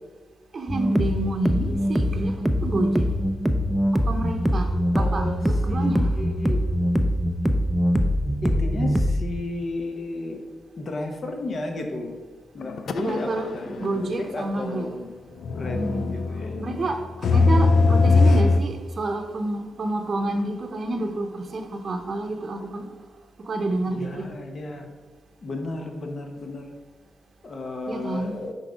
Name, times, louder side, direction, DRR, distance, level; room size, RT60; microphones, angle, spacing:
voice 1, 0.5-3.1 3.9-6.2 13.0-14.9 15.7-16.1 16.6-17.0 17.3-22.9 23.4-24.3 27.9-28.4, right 2 dB, 45° right, 0.8 m, -29 dB
sound 1, 0.7-9.3, equal, 5° right, 0.5 m, -23 dB
voice 2, 4.9-5.9 6.1-6.6 8.4-10.4 10.8-12.2 12.5-15.1 15.5-16.9 23.8-24.9 25.4-26.7 27.4-28.5, left 2 dB, 45° left, 1.1 m, -33 dB
sound 2, 12.6-13.6 13.8-13.9 15.4-18.6, left 3 dB, 60° left, 0.4 m, -20 dB
6.0 x 4.2 x 5.0 m
cardioid pair, 100°, 0 cm